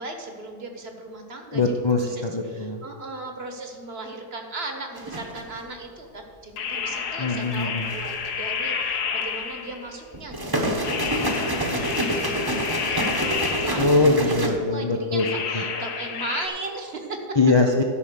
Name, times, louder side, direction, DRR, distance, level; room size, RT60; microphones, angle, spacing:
voice 1, 0.0-1.7 2.1-17.4, right 2 dB, 45° right, 4 dB, 1.3 m, -37 dB
voice 2, 1.5-2.8 7.2-7.9 13.7-15.2 15.5-15.6 17.4-17.8, left 3 dB, 40° left, 1 dB, 0.3 m, -22 dB
sound 1, 4.9-5.6 7.5-8.3 10.1-14.5, right 1 dB, 15° right, 1.0 m, -27 dB
sound 2, 6.6-10.0 10.8-14.2 15.2-16.5, left 6 dB, 80° left, 1.4 m, -30 dB
12.5 x 5.5 x 6.8 m, 2.1 s
omnidirectional pair, 1.7 m